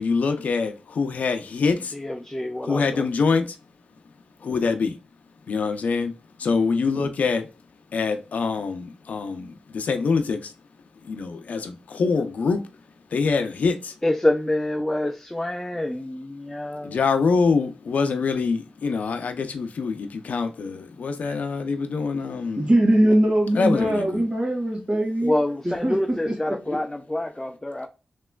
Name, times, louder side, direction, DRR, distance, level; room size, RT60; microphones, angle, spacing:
voice 1, 0.0-1.9 2.7-3.6 4.4-4.9 5.5-6.1 6.4-7.5 7.9-10.5 11.0-12.6 13.1-13.9 16.8-22.7 23.6-24.3, left 4 dB, 80° left, 0.5 m, -24 dB
voice 2, 1.9-3.1 14.0-17.0 25.2-27.9, left 1 dB, 15° left, 0.4 m, -26 dB
voice 3, 22.6-25.3 25.6-25.9 26.2-26.3 26.7-26.8, right 1 dB, 45° right, 1.7 m, -21 dB
3.2 x 2.9 x 2.2 m
cardioid pair, 50°, 3 cm